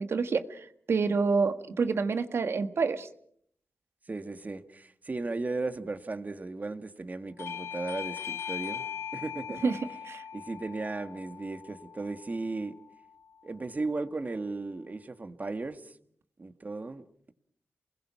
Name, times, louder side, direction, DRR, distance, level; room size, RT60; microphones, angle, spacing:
voice 1, 0.0-3.1 9.6-9.8 10.0-10.2, right 4 dB, 70° right, 1.6 m, -28 dB
voice 2, 4.1-8.9 9.1-9.7 10.3-12.7 13.4-16.0 16.4-17.0, right 3 dB, 40° right, 1.7 m, -36 dB
Bell / Doorbell, 7.4-12.6, left 8 dB, 85° left, 3.6 m, -40 dB
28.5 x 21.0 x 5.8 m
cardioid pair, 75°, 4 cm